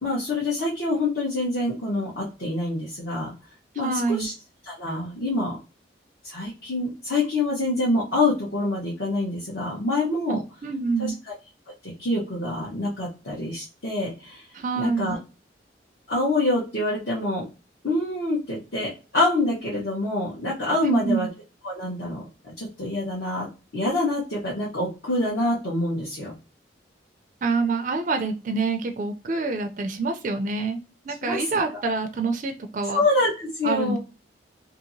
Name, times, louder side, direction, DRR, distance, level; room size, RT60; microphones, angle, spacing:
voice 1, 0.0-3.3 3.7-4.3 4.6-5.6 6.2-10.4 11.0-11.3 11.8-15.2 16.1-17.5 17.8-21.3 21.6-23.5 23.7-26.3 31.2-31.6 32.9-34.0, left 2 dB, 60° left, -7 dB, 1.1 m, -26 dB
voice 2, 3.8-4.3 10.3-11.1 14.5-15.2 20.8-21.3 27.4-30.8 31.1-33.0 33.6-34.0, right 3 dB, 45° right, 6 dB, 0.4 m, -26 dB
2.8 x 2.8 x 2.6 m, 0.31 s
head